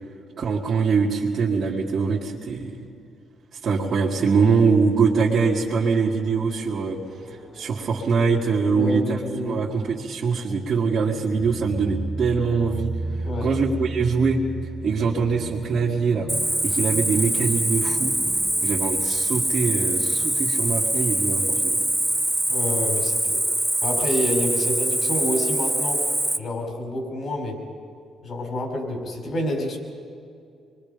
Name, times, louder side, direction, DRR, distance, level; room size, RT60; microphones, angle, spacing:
voice 1, 0.4-2.8 3.6-7.0 7.3-9.2 9.5-12.9 13.4-14.4 14.8-16.3 16.6-18.1 18.6-21.8, right 5 dB, 55° right, -6 dB, 2.0 m, -23 dB
sound 1, 5.5-22.7, right 2 dB, 30° left, 2.4 m, -37 dB
voice 2, 8.7-9.7 13.2-13.5 22.4-23.4 23.8-26.0 26.4-27.6 28.2-29.8, left 1 dB, 55° left, 2 dB, 5.0 m, -28 dB
Cricket, 16.3-26.4, right 1 dB, 5° right, 0.9 m, -24 dB
25.0 x 22.0 x 5.2 m, 2.4 s
cardioid pair, 90°, 0 cm